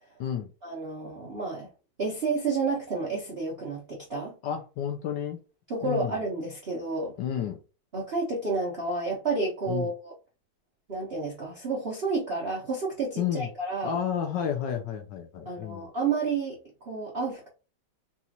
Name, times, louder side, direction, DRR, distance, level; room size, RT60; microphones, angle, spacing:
voice 1, 0.6-1.7 2.0-4.4 5.7-7.1 7.9-10.1 10.9-14.0 15.5-16.6 16.9-17.5, right 3 dB, 55° right, 0.6 m, -30 dB
voice 2, 4.4-5.4 5.8-6.1 7.2-7.6 9.7-9.9 13.2-13.5 13.8-15.9, left 9 dB, 70° left, 1.1 m, -31 dB
4.1 x 2.4 x 2.8 m
omnidirectional pair, 2.3 m